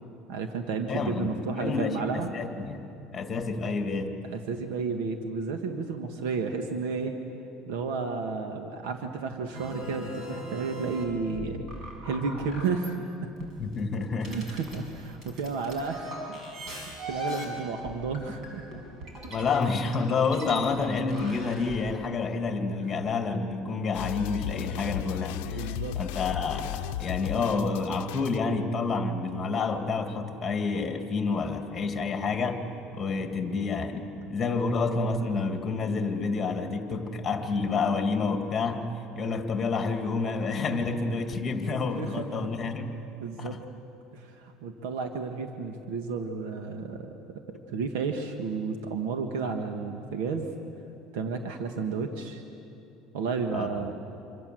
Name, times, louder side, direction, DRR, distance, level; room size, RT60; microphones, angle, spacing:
voice 1, 0.3-2.3 4.3-7.1 7.7-11.6 12.0-13.1 14.2-16.4 16.6-18.6 25.5-26.0 42.0-42.5 43.2-43.6 44.1-47.1 47.5-50.5 51.1-52.4 53.1-53.9, right 5 dB, 90° right, 5 dB, 1.7 m, -32 dB
voice 2, 0.9-4.2 13.6-14.4 19.3-32.6 32.9-38.9 39.1-42.9 43.4-43.6 53.5-53.7, left 4 dB, 20° left, 5 dB, 2.4 m, -29 dB
sound 1, 9.5-13.0 13.4-21.8, equal, 40° right, 6.6 m, -40 dB
sound 2, 23.9-28.4, left 14 dB, 85° left, 0.6 m, -35 dB
26.5 x 26.5 x 7.8 m, 2.8 s
cardioid pair, 155°, 0 cm